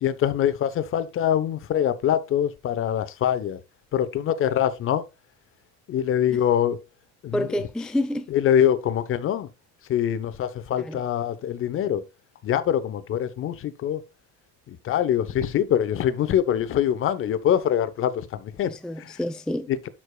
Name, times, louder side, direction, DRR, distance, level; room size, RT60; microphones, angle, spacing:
voice 1, 0.0-3.6 3.9-5.0 5.9-6.8 7.2-7.5 8.3-9.5 9.9-12.0 12.4-14.0 14.7-19.1, left 10 dB, 45° left, 1.0 m, -24 dB
voice 2, 7.3-8.3 10.7-11.0 18.6-19.9, left 1 dB, ahead, 0.4 m, -29 dB
11.5 x 4.8 x 2.3 m
cardioid pair, 130°, 31 cm